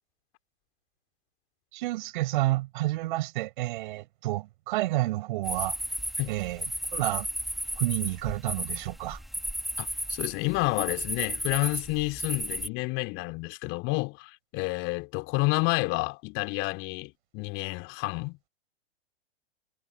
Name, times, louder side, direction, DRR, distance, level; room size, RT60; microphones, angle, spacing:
voice 1, 1.7-5.8 6.3-6.7 6.9-7.3 7.8-9.2, right 18 dB, 50° right, 7.0 m, -29 dB
sound 1, 5.4-12.7, equal, ahead, 2.7 m, -34 dB
voice 2, 9.8-18.4, left 26 dB, 40° left, 4.3 m, -30 dB
figure-of-eight pair, 105°, 32 cm